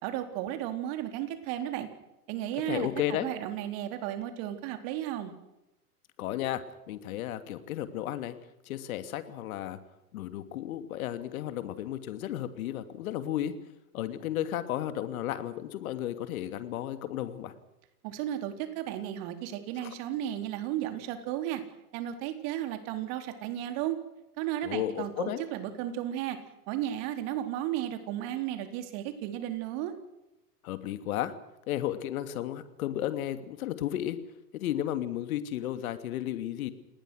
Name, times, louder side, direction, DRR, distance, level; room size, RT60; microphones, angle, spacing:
voice 1, 0.0-1.9 2.3-5.3 18.0-21.6 21.9-24.0 24.4-26.4 26.7-29.9, right 12 dB, 45° right, 7 dB, 4.2 m, -34 dB
voice 2, 2.7-3.3 6.2-6.6 6.9-8.3 8.7-9.8 10.1-13.5 13.9-17.5 19.8-19.9 24.6-25.4 30.6-31.3 31.7-34.2 34.5-36.7, left 12 dB, 60° left, 11 dB, 2.7 m, -33 dB
28.0 x 20.0 x 6.5 m, 0.90 s
hypercardioid pair, 115°, 47 cm